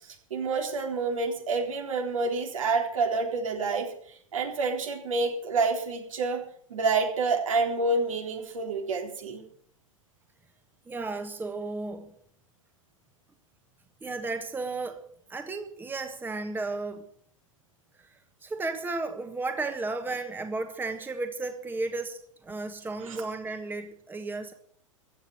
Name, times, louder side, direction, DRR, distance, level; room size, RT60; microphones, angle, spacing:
voice 1, 0.3-3.9 4.3-6.4 6.7-9.4 23.0-23.2, right 3 dB, 75° right, 2 dB, 3.8 m, -28 dB
voice 2, 10.9-12.1 14.0-15.0 15.3-17.1 18.0-24.5, right 3 dB, 10° right, 7 dB, 1.5 m, -34 dB
15.5 x 8.7 x 8.0 m, 0.62 s
figure-of-eight pair, 100°, 17 cm